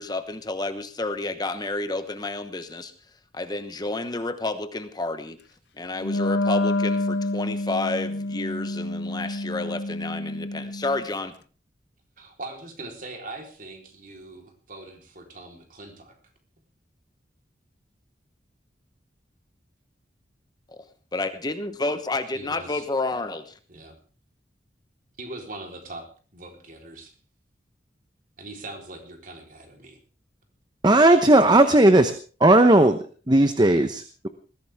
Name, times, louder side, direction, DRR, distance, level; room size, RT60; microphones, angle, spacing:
voice 1, 0.0-5.4 5.7-11.3 20.7-23.6, left 2 dB, 25° left, 10 dB, 1.1 m, -30 dB
Wind instrument woodwind instrument, 6.0-11.1, left 2 dB, 70° left, 0.8 m, -28 dB
voice 2, 12.2-16.1 22.3-22.8 23.7-23.9 25.2-26.0 26.3-27.1 28.4-30.0, right 2 dB, 50° right, 3 dB, 4.0 m, -41 dB
voice 3, 30.8-32.1 32.4-33.0 33.3-34.3, right 1 dB, 25° right, 9 dB, 0.9 m, -16 dB
20.0 x 15.5 x 3.6 m, 0.38 s
head